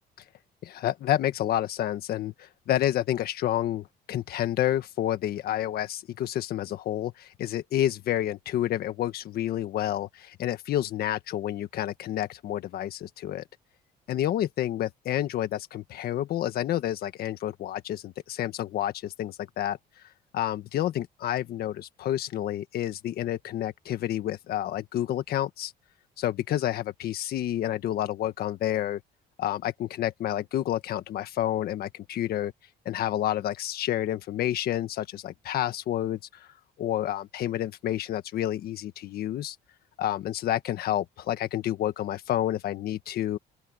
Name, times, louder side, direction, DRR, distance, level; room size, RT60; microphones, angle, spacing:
voice 1, 0.6-13.4 14.1-19.8 20.3-25.7 26.2-29.0 29.4-32.5 32.9-36.5 36.8-39.6 40.0-43.4, left 12 dB, 65° left, 1.6 m, -29 dB
open air
cardioid pair, 110°, 17 cm